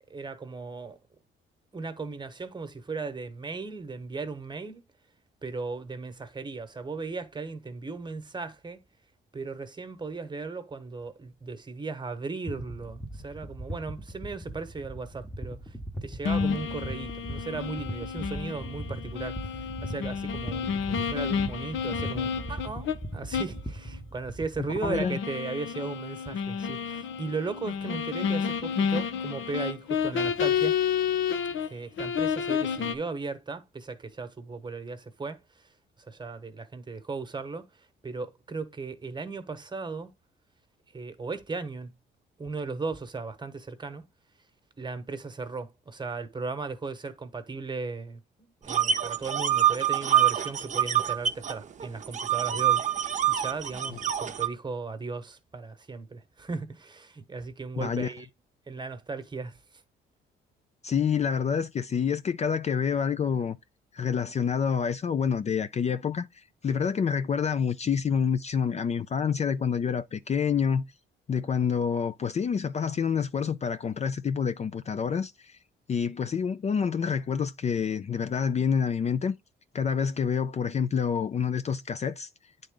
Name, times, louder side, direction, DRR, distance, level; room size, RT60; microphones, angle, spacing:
voice 1, 0.1-1.0 1.7-4.8 5.4-8.8 9.3-15.8 16.0-30.8 31.6-35.7 36.0-40.1 40.9-41.9 42.4-44.0 44.8-58.3 58.7-59.6, right 4 dB, 20° right, 1.2 m, -37 dB
sound 1, 12.4-25.1, right 1 dB, ahead, 1.0 m, -39 dB
sound 2, 16.3-23.0 23.3-23.6 23.9-24.0 24.9-31.7 32.0-32.9, left 7 dB, 75° left, 0.9 m, -30 dB
voice 2, 24.8-25.2 57.8-58.1 60.8-63.6 63.9-70.8 71.3-75.6 75.9-79.4 79.7-82.3, left 7 dB, 35° left, 0.4 m, -27 dB
sound 3, 48.7-51.5 51.8-54.5, right 10 dB, 40° right, 0.7 m, -25 dB
9.0 x 3.8 x 3.7 m
cardioid pair, 90°, 20 cm